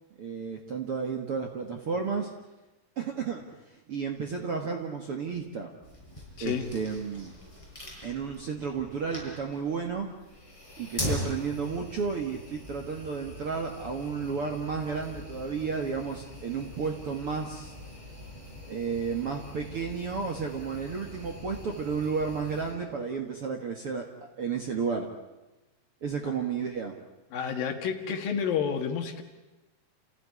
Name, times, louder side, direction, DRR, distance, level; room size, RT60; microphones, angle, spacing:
voice 1, 0.2-2.3 3.0-5.7 6.4-7.4 8.0-10.1 10.8-17.7 18.7-24.1 24.4-25.1 26.0-27.0, right 5 dB, 50° right, 3 dB, 1.9 m, -32 dB
sound 1, 5.8-22.7, left 1 dB, 5° left, 6.8 m, -42 dB
voice 2, 6.4-6.7 26.3-26.4 27.3-29.2, left 7 dB, 65° left, 6 dB, 3.3 m, -30 dB
29.5 x 16.0 x 9.7 m, 1.1 s
omnidirectional pair, 4.7 m